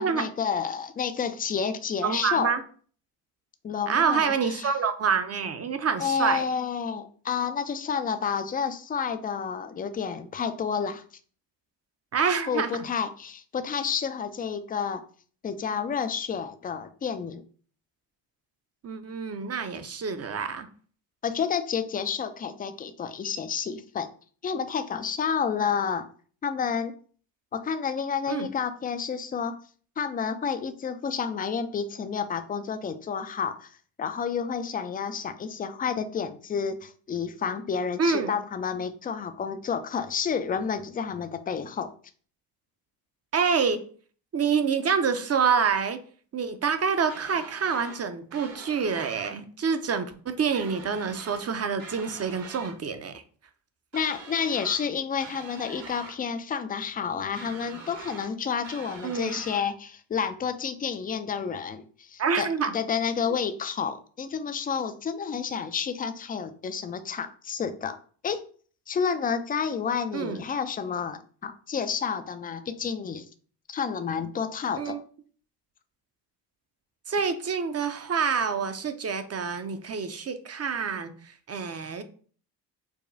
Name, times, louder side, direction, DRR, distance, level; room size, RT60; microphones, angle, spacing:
voice 1, 0.0-2.5 3.6-4.7 6.0-11.0 12.5-15.0 15.4-17.4 21.2-24.1 24.4-26.1 26.4-26.9 27.5-29.5 30.0-41.9 53.9-62.5 62.7-68.0 68.2-68.4 68.9-73.3 73.7-75.0, left 6 dB, 20° left, 10 dB, 0.3 m, -30 dB
voice 2, 2.0-2.6 3.9-6.4 12.1-12.8 18.8-20.7 28.3-28.5 38.0-38.3 43.3-43.8 44.3-46.0 46.3-53.2 59.0-59.4 62.2-62.7 70.1-70.4 74.8-75.0 77.1-82.0, right 6 dB, 30° right, 9 dB, 0.6 m, -27 dB
sound 1, 47.1-48.0 48.3-49.4 50.5-51.5 51.8-52.8 53.9-54.9 55.2-56.2 57.4-58.3 58.6-59.6, right 4 dB, 60° right, 1.3 m, -44 dB
4.8 x 2.3 x 2.6 m, 0.44 s
supercardioid pair, 60°, 49 cm